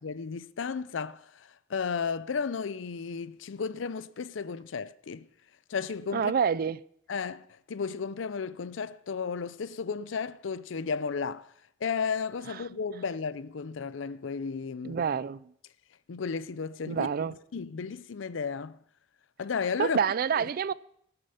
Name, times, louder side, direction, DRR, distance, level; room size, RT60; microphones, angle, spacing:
voice 1, 0.0-5.3 5.7-6.3 7.1-11.5 11.8-15.0 16.1-17.1 17.5-18.8 19.4-20.0 20.4-20.5, left 5 dB, 80° left, 0.5 m, -34 dB
voice 2, 6.1-6.8 12.5-12.6 14.8-15.4 16.9-17.3 19.8-20.7, right 7 dB, 50° right, 0.4 m, -27 dB
17.5 x 6.8 x 5.7 m
head